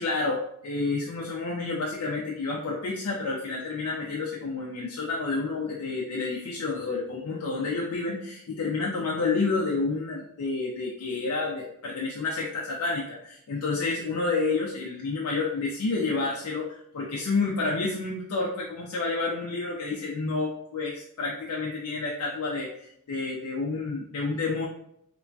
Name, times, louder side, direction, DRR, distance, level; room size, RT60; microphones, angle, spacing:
voice 1, 0.0-24.7, left 3 dB, 85° left, -3 dB, 0.4 m, -29 dB
2.9 x 2.2 x 2.5 m, 0.72 s
head